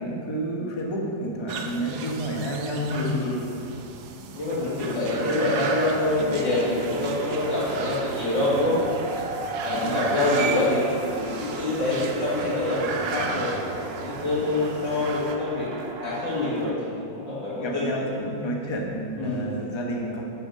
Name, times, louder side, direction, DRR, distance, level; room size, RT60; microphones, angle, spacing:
voice 1, 0.0-3.1 9.7-10.2 14.9-15.1 17.5-20.2, right 1 dB, 20° left, -1 dB, 0.9 m, -30 dB
sound 1, 1.5-15.4, right 5 dB, 90° right, 1.6 m, -36 dB
voice 2, 2.9-3.4 4.3-8.7 9.6-13.5 14.0-15.7 16.0-18.1 19.2-19.5, left 2 dB, 65° left, -10 dB, 2.9 m, -26 dB
sound 2, 6.1-16.7, right 3 dB, 60° right, 0.6 m, -35 dB
8.4 x 7.5 x 6.5 m, 2.5 s
omnidirectional pair, 2.1 m